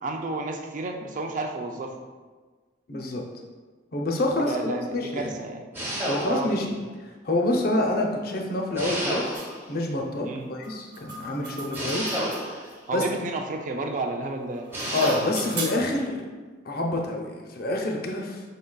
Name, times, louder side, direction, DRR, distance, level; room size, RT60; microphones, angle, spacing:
voice 1, 0.0-2.0 4.4-5.6 6.2-6.7 10.2-10.5 12.9-14.7, right 2 dB, 40° right, 3 dB, 0.4 m, -31 dB
voice 2, 2.9-3.2 3.9-5.3 6.1-6.7 7.0-12.2 12.5-13.0 14.9-16.2 16.6-18.4, left 1 dB, 50° left, 1 dB, 0.6 m, -27 dB
sound 1, 5.7-6.7 8.8-9.7 11.7-12.8 14.7-15.5, equal, 10° right, 0.8 m, -30 dB
sound 2, 9.3-9.5 10.6-12.7 14.4-16.0, right 3 dB, 55° right, 0.9 m, -37 dB
5.2 x 3.8 x 2.2 m, 1.4 s
head